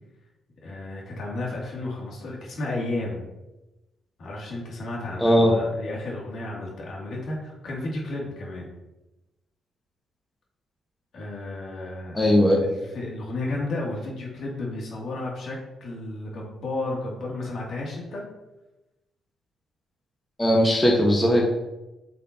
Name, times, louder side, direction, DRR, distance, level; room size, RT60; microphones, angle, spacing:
voice 1, 0.6-3.2 4.2-8.7 11.1-18.2, left 2 dB, 65° left, -3 dB, 2.3 m, -33 dB
voice 2, 5.2-5.5 12.1-12.6 20.4-21.4, equal, 15° left, -1 dB, 1.2 m, -18 dB
8.2 x 5.8 x 2.8 m, 1.0 s
cardioid pair, 90°, 0 cm